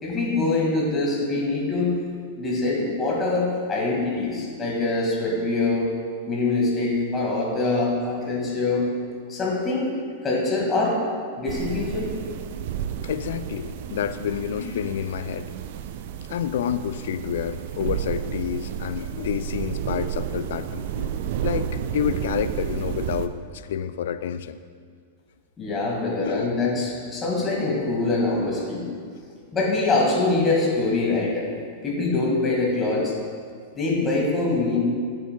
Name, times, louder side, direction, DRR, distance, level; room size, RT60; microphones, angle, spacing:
voice 1, 0.0-2.0 2.4-5.9 6.3-8.8 9.3-9.9 10.2-10.9 11.4-12.1 25.6-28.8 29.5-31.5 31.8-33.0 33.8-34.8, left 3 dB, 20° left, -3 dB, 2.1 m, -24 dB
sound 1, 11.5-23.3, right 9 dB, 50° right, 0.4 m, -31 dB
voice 2, 13.0-15.5 16.3-21.1 21.4-24.6 26.2-26.6 32.9-33.1, left 9 dB, 60° left, 12 dB, 0.3 m, -29 dB
11.5 x 6.8 x 2.4 m, 2.1 s
figure-of-eight pair, 95°, 0 cm